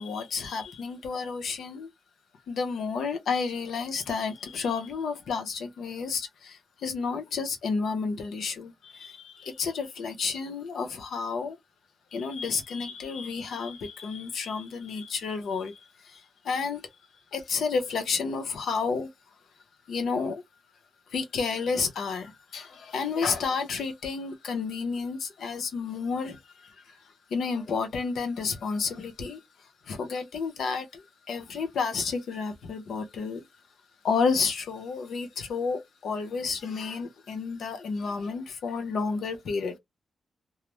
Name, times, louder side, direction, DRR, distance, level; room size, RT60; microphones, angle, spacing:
voice 1, 0.0-1.9 2.5-11.6 12.1-16.9 17.3-19.1 19.9-20.4 21.1-33.4 34.0-39.8, left 5 dB, 75° left, 0.6 m, -31 dB
2.3 x 2.0 x 2.9 m
cardioid pair, 110°, 0 cm